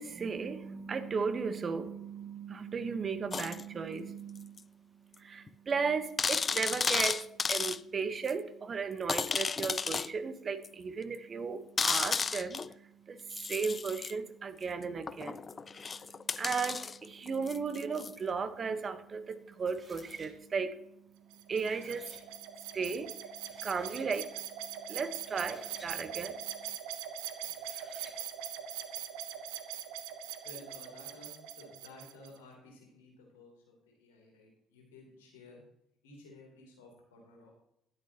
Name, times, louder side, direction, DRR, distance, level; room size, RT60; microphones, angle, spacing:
voice 1, 0.0-4.6 5.2-12.6 13.1-13.2 13.5-15.4 16.4-20.8 21.5-22.1 22.7-23.1 23.6-24.3 24.9-26.4, right 5 dB, 35° right, 11 dB, 1.1 m, -35 dB
sound 1, 3.3-3.6 4.6-4.7 5.1-5.2 5.5-5.6 6.2-7.8 8.3-8.4 9.1-10.1 10.6-10.7 11.8-12.7 13.3-14.1 15.1-18.1 20.0-20.1, left 5 dB, 30° left, 0.3 m, -33 dB
sound 2, 19.7-20.3 21.3-22.2 23.0-23.1 23.4-24.1 25.2-25.9 27.4-28.2, right 2 dB, 20° right, 3.0 m, -56 dB
sound 3, 21.3-32.4, right 10 dB, 65° right, 0.9 m, -42 dB
voice 2, 30.4-35.6 36.0-37.5, left 2 dB, 75° left, -1 dB, 3.2 m, -54 dB
12.5 x 10.5 x 3.0 m, 0.79 s
figure-of-eight pair, 50°, 0 cm